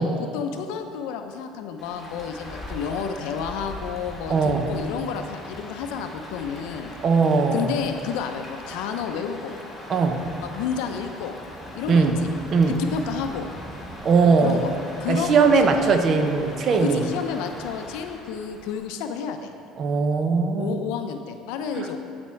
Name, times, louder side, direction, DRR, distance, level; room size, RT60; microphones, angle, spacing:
voice 1, 0.0-6.9 7.5-9.5 10.4-11.3 11.7-12.0 12.8-13.5 14.2-14.7 15.0-15.9 16.7-19.5 20.6-22.0, left 7 dB, 80° left, 6 dB, 0.5 m, -31 dB
Rain, 1.8-18.8, left 1 dB, 15° left, 1.7 m, -40 dB
voice 2, 4.3-4.7 7.0-7.7 9.9-10.2 11.9-12.2 12.5-12.8 14.0-14.6 15.1-17.0 19.8-20.9 21.7-21.9, right 4 dB, 40° right, 6 dB, 0.7 m, -20 dB
12.0 x 4.3 x 4.4 m, 2.5 s
cardioid pair, 125°, 0 cm